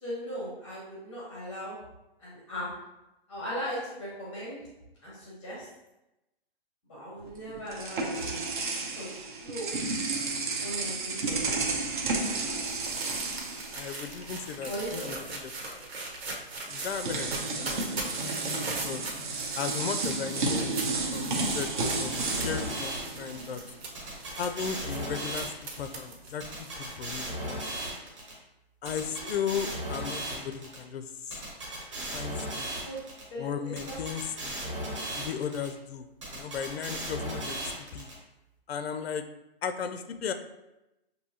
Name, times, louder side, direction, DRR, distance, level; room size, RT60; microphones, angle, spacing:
voice 1, 0.0-1.8 2.2-2.7 3.3-4.7 5.0-5.7 6.9-8.4 8.9-9.7 10.6-11.5 14.6-15.3 15.8-15.9 28.8-29.3 32.7-33.0 33.3-34.0 34.3-34.4, equal, 5° left, -6 dB, 0.7 m, -38 dB
sound 1, 7.2-14.5 14.7-15.0 16.1-16.2 16.6-23.8, right 3 dB, 50° right, 0.7 m, -32 dB
sound 2, 11.9-27.0, right 3 dB, 80° right, 1.2 m, -40 dB
voice 2, 13.7-15.8 16.7-19.1 19.6-20.7 21.1-23.6 24.4-27.9 28.8-31.4 32.0-32.7 33.4-34.6 35.1-38.1 38.7-39.2 39.6-40.3, left 7 dB, 80° left, 9 dB, 0.5 m, -36 dB
sound 3, 21.5-23.4 23.9-25.9 26.4-28.3 28.9-30.8 31.3-33.2 33.8-35.7 36.2-38.1, right 1 dB, 30° right, 1.0 m, -36 dB
6.1 x 2.7 x 2.7 m, 0.94 s
hypercardioid pair, 175°, 31 cm